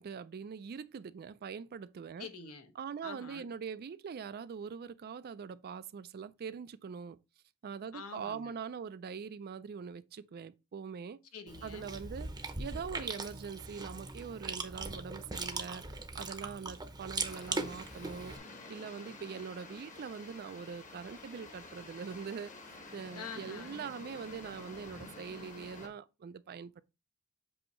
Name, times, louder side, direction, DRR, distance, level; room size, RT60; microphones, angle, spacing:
voice 1, 0.0-2.3 2.8-7.2 7.6-11.2 11.6-12.3 12.6-15.9 16.1-18.4 18.7-22.5 22.9-26.8, right 6 dB, 45° right, 0.4 m, -43 dB
voice 2, 2.2-2.7 3.0-3.5 7.9-8.5 11.3-11.9 23.1-23.8, left 5 dB, 70° left, 1.1 m, -46 dB
Chewing mastication, 11.5-18.4, right 3 dB, 20° right, 0.7 m, -40 dB
sound 1, 17.3-25.9, left 2 dB, 35° left, 1.3 m, -50 dB
7.8 x 2.8 x 4.3 m
head